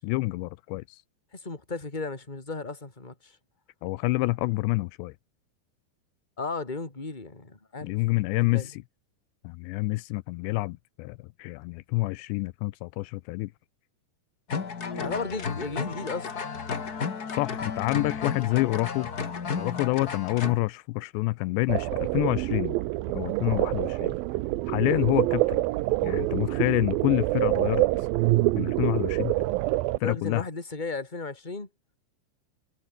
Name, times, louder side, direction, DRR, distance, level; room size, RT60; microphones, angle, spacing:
voice 1, 0.0-1.0 3.8-5.1 7.8-8.8 9.4-13.5 17.4-19.1 19.6-22.8 23.2-24.1 24.7-25.6 26.0-27.8 28.6-29.4 30.0-30.4, left 21 dB, 85° left, 2.8 m, -27 dB
voice 2, 1.3-3.3 6.4-7.9 8.4-8.7 14.9-16.4 24.9-25.1 30.0-31.7, left 3 dB, 10° left, 3.3 m, -35 dB
sound 1, 14.5-20.6, left 5 dB, 55° left, 1.0 m, -33 dB
sound 2, 21.7-30.0, right 18 dB, 90° right, 2.1 m, -26 dB
omnidirectional pair, 5.1 m